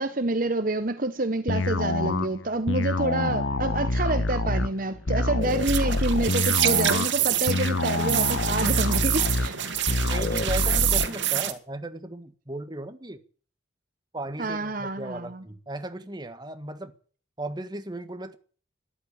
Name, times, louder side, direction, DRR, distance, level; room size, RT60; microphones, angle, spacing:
voice 1, 0.0-9.6 14.4-15.4, right 2 dB, 40° right, 1.0 m, -28 dB
sound 1, 1.5-11.1, left 2 dB, 70° left, 1.2 m, -26 dB
sound 2, 5.4-11.5, right 11 dB, 65° right, 2.3 m, -27 dB
voice 2, 10.1-13.2 14.1-16.9 17.4-18.4, right 1 dB, 20° right, 1.6 m, -36 dB
13.5 x 11.5 x 8.8 m
head